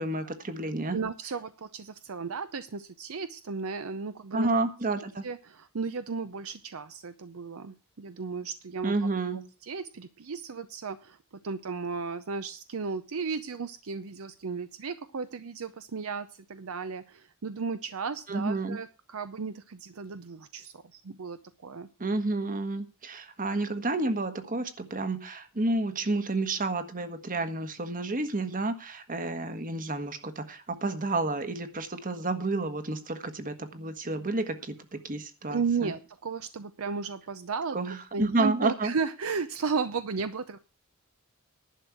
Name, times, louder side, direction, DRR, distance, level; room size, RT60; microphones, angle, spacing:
voice 1, 0.0-1.0 4.3-5.2 8.8-9.4 18.3-18.8 22.0-35.9 37.7-38.9, right 2 dB, 40° right, 9 dB, 1.4 m, -30 dB
voice 2, 0.9-4.5 5.2-8.9 9.6-11.2 11.4-21.9 35.5-37.8 38.1-40.6, right 5 dB, 70° right, 11 dB, 0.6 m, -34 dB
11.0 x 6.3 x 8.1 m, 0.33 s
head